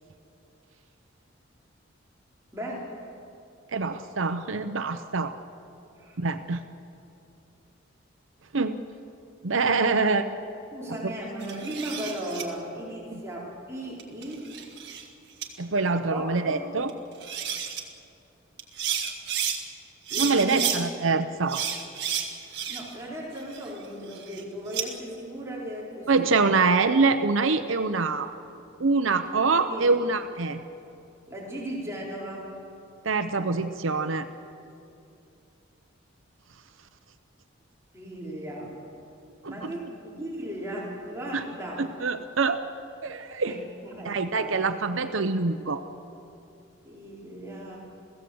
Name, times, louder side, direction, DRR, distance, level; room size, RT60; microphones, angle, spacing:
voice 1, 2.5-2.9 6.0-6.2 10.7-14.5 16.0-16.7 20.1-20.7 22.7-26.4 29.3-29.8 31.3-32.6 37.9-38.8 39.4-41.8 43.4-44.6 46.8-47.8, right 1 dB, 15° right, -5 dB, 4.2 m, -36 dB
voice 2, 3.7-5.3 6.2-6.6 8.5-8.8 9.4-10.3 11.0-11.1 13.1-13.2 15.6-16.9 20.2-21.6 26.1-28.3 28.8-30.6 33.0-34.3 39.4-39.7 41.3-41.4 41.8-42.7 43.0-43.6 44.0-45.8, right 4 dB, 80° right, 9 dB, 0.8 m, -25 dB
sound 1, 11.4-12.4 14.0-15.1 15.4-15.5 16.9-17.0 17.2-17.8 18.6-19.6 20.1-20.8 21.5-23.0 23.4-24.9, right 8 dB, 55° right, 1.9 m, -31 dB
30.0 x 16.0 x 7.9 m, 2.7 s
head